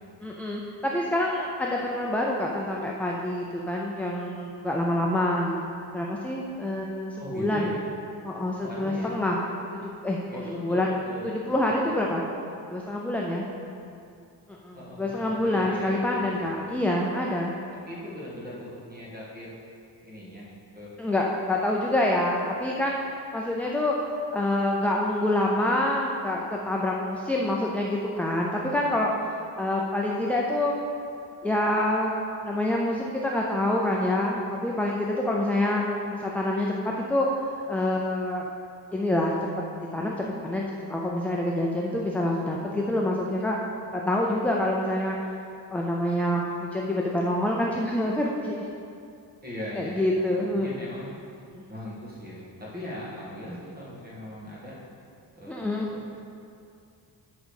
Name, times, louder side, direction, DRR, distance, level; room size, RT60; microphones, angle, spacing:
voice 1, 0.2-7.7 8.2-9.4 9.7-12.2 12.7-13.5 14.5-17.5 21.0-23.0 23.3-24.0 24.3-29.1 29.6-30.7 31.4-32.2 32.4-35.8 36.1-37.3 37.7-38.4 38.9-39.3 39.9-43.6 43.9-45.2 45.7-48.7 49.7-50.7 51.5-51.6 55.5-55.9, left 1 dB, 5° left, -2 dB, 0.3 m, -26 dB
voice 2, 7.2-7.8 8.6-9.1 10.3-11.6 14.7-16.6 17.8-19.5 20.0-20.5 20.7-21.0 49.4-51.2 51.7-54.7 55.4-56.1, left 1 dB, 20° right, -7 dB, 1.9 m, -40 dB
8.3 x 3.8 x 6.3 m, 2.5 s
wide cardioid pair, 165°, 45 cm